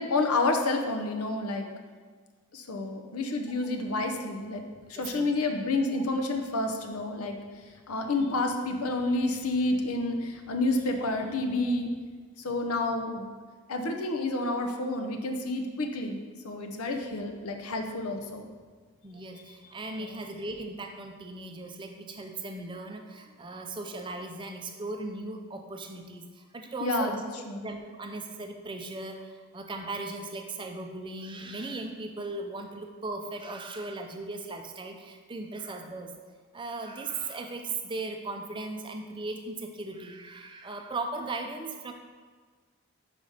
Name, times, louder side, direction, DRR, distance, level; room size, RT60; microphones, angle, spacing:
voice 1, 0.0-1.7 2.5-11.9 12.4-13.3 13.7-18.5 20.0-20.2 26.8-27.6, left 2 dB, 90° left, 4 dB, 0.8 m, -29 dB
voice 2, 5.0-5.3 19.0-27.1 27.5-36.1 36.5-41.9, right 2 dB, 20° right, 4 dB, 0.5 m, -38 dB
5.6 x 4.9 x 4.9 m, 1.5 s
head